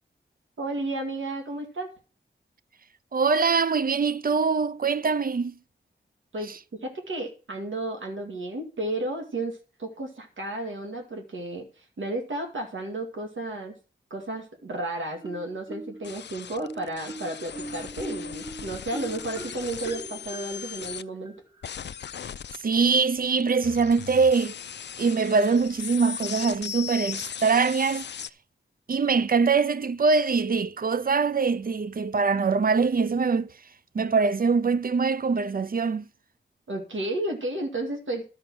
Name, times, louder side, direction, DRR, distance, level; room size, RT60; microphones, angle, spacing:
voice 1, 0.6-1.9 6.3-13.8 14.1-21.4 36.7-38.2, right 2 dB, 75° right, 2.0 m, -33 dB
voice 2, 3.1-5.5 22.6-24.5 25.0-28.1 28.9-33.5 33.9-36.1, right 4 dB, 45° right, 0.6 m, -23 dB
Marimba xylophone, 15.2-16.1 16.6-22.1, right 2 dB, 20° right, 2.0 m, -41 dB
sound 1, 16.0-21.0 21.6-28.3, left 8 dB, 60° left, 0.4 m, -38 dB
12.0 x 5.1 x 6.1 m
cardioid pair, 65°, 20 cm